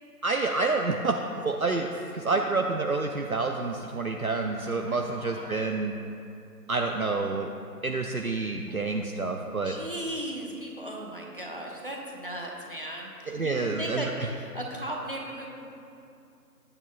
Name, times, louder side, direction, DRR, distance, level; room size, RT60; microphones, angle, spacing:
voice 1, 0.2-1.1 1.4-1.9 2.1-5.9 6.7-7.5 7.8-9.8 13.3-14.1, right 3 dB, 60° right, 3 dB, 0.6 m, -28 dB
voice 2, 4.6-5.8 8.7-8.9 9.6-15.6, right 1 dB, 35° right, -2 dB, 1.1 m, -37 dB
18.0 x 8.9 x 2.3 m, 2.6 s
figure-of-eight pair, 170°, 49 cm